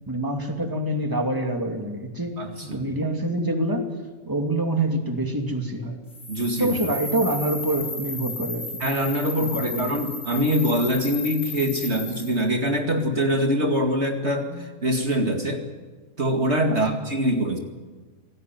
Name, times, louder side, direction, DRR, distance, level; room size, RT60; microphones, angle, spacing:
voice 1, 0.1-2.4 2.7-3.9 4.3-6.0 6.6-8.8 9.4-9.9 14.5-14.7 16.7-17.0, right 1 dB, 15° right, 3 dB, 2.6 m, -26 dB
voice 2, 2.4-2.8 6.3-6.8 8.8-15.6 16.2-17.6, equal, 50° right, 3 dB, 2.5 m, -24 dB
sound 1, 6.1-12.4, left 3 dB, 90° left, 3.3 m, -34 dB
27.0 x 18.5 x 9.4 m, 1.3 s
omnidirectional pair, 1.5 m